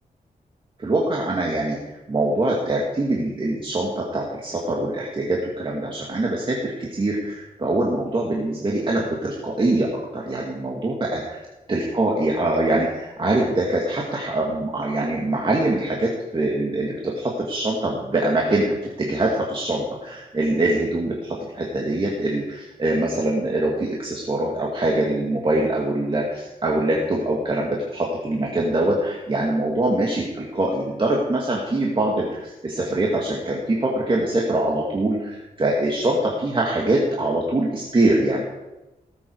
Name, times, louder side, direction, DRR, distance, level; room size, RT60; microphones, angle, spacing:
voice 1, 0.8-1.8 2.1-11.4 11.7-38.4, right 2 dB, 35° right, -2 dB, 2.3 m, -23 dB
18.0 x 8.3 x 4.8 m, 1.1 s
wide cardioid pair, 100°, 15 cm